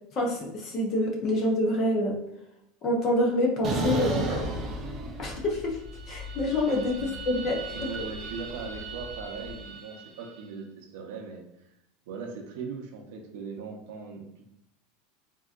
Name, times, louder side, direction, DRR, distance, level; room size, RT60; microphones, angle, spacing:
voice 1, 0.1-2.2 2.8-4.3 5.2-5.8 6.1-7.7, left 1 dB, 35° left, 0 dB, 0.7 m, -26 dB
sound 1, 3.6-5.6 5.9-10.2, right 3 dB, 30° right, 0.5 m, -35 dB
Dog, 3.7-9.6, left 1 dB, 5° right, 1.2 m, -42 dB
voice 2, 6.7-7.1 7.7-11.4 12.1-14.5, right 5 dB, 70° right, 1 dB, 0.6 m, -39 dB
3.7 x 2.7 x 2.4 m, 0.79 s
supercardioid pair, 155°, 0 cm